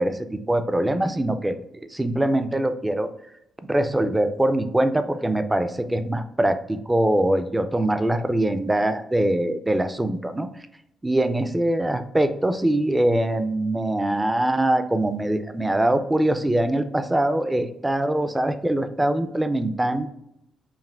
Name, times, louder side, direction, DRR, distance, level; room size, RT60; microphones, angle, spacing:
voice 1, 0.0-1.6 1.9-3.1 3.6-10.5 11.0-20.1, right 1 dB, 10° right, 10 dB, 0.3 m, -23 dB
4.7 x 3.0 x 3.3 m, 0.80 s
cardioid pair, 125°, 0 cm